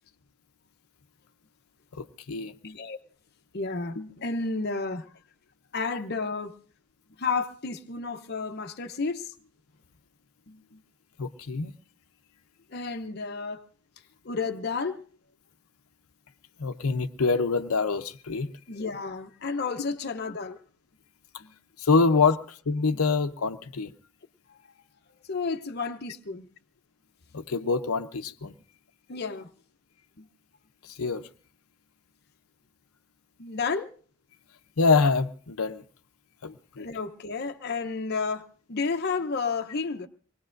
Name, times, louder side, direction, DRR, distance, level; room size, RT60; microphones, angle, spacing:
voice 1, 1.9-2.5 11.2-11.7 16.6-18.5 21.8-23.9 27.3-28.5 30.9-31.3 34.8-35.8 36.4-36.9, left 4 dB, 90° left, 0.7 m, -25 dB
voice 2, 2.6-3.0 3.5-5.1 5.7-6.6 7.2-9.3 10.5-10.8 12.7-13.7 14.2-15.0 18.7-20.6 21.4-21.5 24.5-24.7 25.3-26.5 29.1-29.5 30.2-30.3 33.4-33.9 36.8-40.1, left 4 dB, 50° left, 0.7 m, -32 dB
24.5 x 20.0 x 2.6 m
head